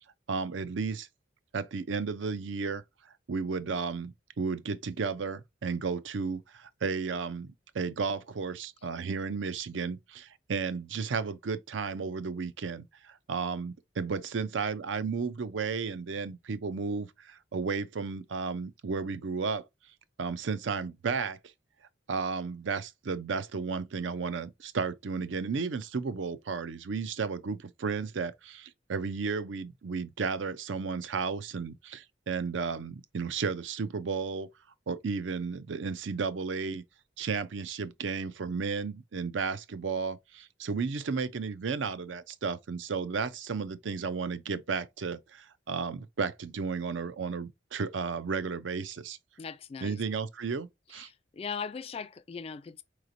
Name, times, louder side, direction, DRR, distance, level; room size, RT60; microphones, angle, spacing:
voice 1, 0.3-1.1 1.5-2.8 3.3-19.6 20.2-21.4 22.1-34.5 34.9-36.8 37.2-49.2 49.8-51.1, right 5 dB, 80° right, 0.5 m, -33 dB
voice 2, 49.4-50.0 50.9-52.8, left 6 dB, 30° left, 0.3 m, -39 dB
4.9 x 3.1 x 2.5 m
head